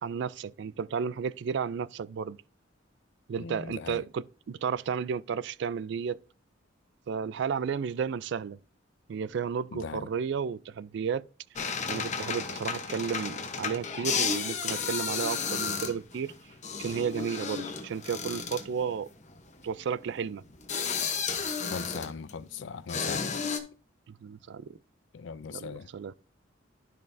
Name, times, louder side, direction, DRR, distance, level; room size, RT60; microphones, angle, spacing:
voice 1, 0.0-2.4 3.3-6.2 7.1-8.6 9.1-11.2 11.9-16.4 16.8-19.1 19.6-20.4 24.1-24.7 25.5-26.1, right 6 dB, 60° right, 0.3 m, -33 dB
voice 2, 3.4-4.0 9.7-10.1 21.7-23.3 25.1-25.9, left 6 dB, 65° left, 0.4 m, -39 dB
sound 1, 11.6-22.5 22.9-23.6, left 6 dB, 35° left, 0.9 m, -33 dB
12.0 x 5.4 x 2.6 m
head